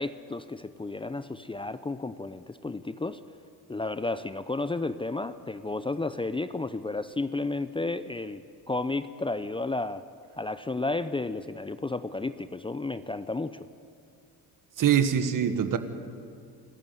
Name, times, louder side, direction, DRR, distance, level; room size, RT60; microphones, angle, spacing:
voice 1, 0.0-3.2 3.7-10.0 10.4-13.7, left 2 dB, 15° left, 12 dB, 0.7 m, -32 dB
voice 2, 14.8-15.8, right 8 dB, 55° right, 10 dB, 1.7 m, -23 dB
26.0 x 14.0 x 9.3 m, 2.4 s
supercardioid pair, 85°, 38 cm